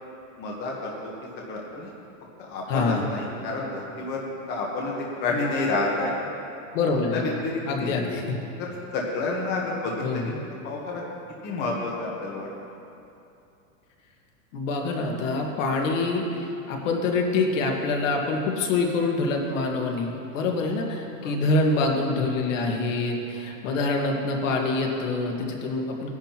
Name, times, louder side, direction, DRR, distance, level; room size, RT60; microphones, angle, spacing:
voice 1, 0.4-1.1 1.5-1.9 2.4-4.2 4.5-6.1 7.1-8.2 8.6-10.4 10.6-11.0 11.4-12.5 20.6-20.8 21.2-21.4, left 3 dB, 25° left, -2 dB, 1.2 m, -30 dB
voice 2, 2.7-3.0 6.7-7.3 7.6-8.5 10.0-10.3 14.5-26.1, left 3 dB, 65° left, 1 dB, 1.7 m, -26 dB
18.5 x 10.5 x 3.0 m, 2.7 s
supercardioid pair, 165°, 41 cm